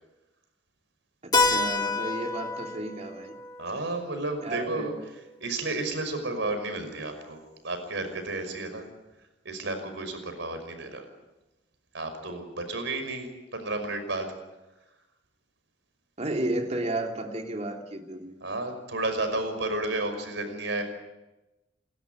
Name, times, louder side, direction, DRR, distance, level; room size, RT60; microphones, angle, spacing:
voice 1, 1.2-3.3 4.4-4.9 16.2-18.3, right 1 dB, 35° right, 3 dB, 3.0 m, -32 dB
Keyboard (musical), 1.3-5.8, left 3 dB, 25° left, 2.1 m, -30 dB
voice 2, 3.6-4.9 5.4-8.8 9.4-11.0 11.9-14.3 18.4-20.8, right 2 dB, 70° right, 7 dB, 5.7 m, -32 dB
29.5 x 13.5 x 9.6 m, 1.0 s
head